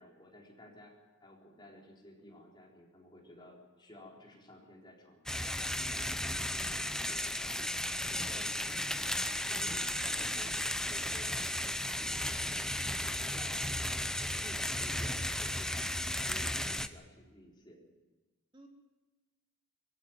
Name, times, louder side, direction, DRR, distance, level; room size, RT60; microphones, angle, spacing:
voice 1, 0.0-9.1 9.5-17.8, left 1 dB, 20° left, -2 dB, 4.4 m, -54 dB
sound 1, 5.3-16.9, left 1 dB, 5° left, 0.6 m, -34 dB
voice 2, 10.0-10.6 16.0-16.6 18.5-18.7, left 1 dB, 25° right, 0 dB, 3.3 m, -57 dB
21.5 x 15.5 x 9.4 m, 1.2 s
head